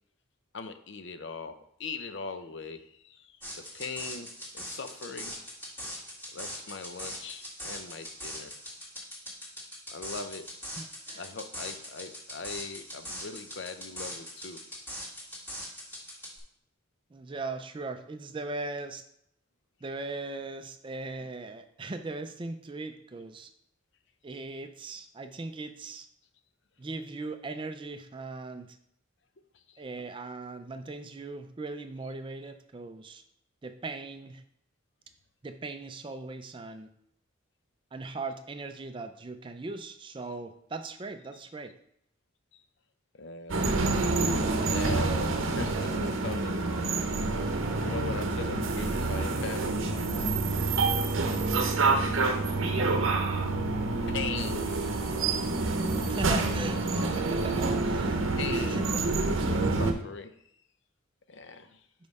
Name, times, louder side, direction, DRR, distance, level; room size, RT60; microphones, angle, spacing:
voice 1, 0.5-4.3 4.5-5.4 6.3-8.5 9.0-9.1 9.9-10.4 11.1-14.6 24.3-24.4 29.5-29.8 42.5-42.6 43.2-43.6 44.7-46.6 47.8-50.0 54.1-54.9 58.1-59.0 59.5-60.3 61.3-61.9, left 4 dB, 60° left, 9 dB, 0.6 m, -40 dB
sound 1, 3.4-16.4, equal, 10° left, 1.8 m, -41 dB
voice 2, 10.8-11.3 17.1-19.0 19.8-23.5 24.2-26.1 26.8-28.8 29.8-33.2 33.6-34.4 35.4-36.9 37.9-41.7 52.8-52.9 56.1-58.2 58.5-59.0 59.4-59.6, right 3 dB, 25° right, 8 dB, 0.4 m, -39 dB
sound 2, 43.5-59.9, right 3 dB, 75° right, 0.7 m, -27 dB
5.3 x 4.6 x 5.3 m, 0.72 s
head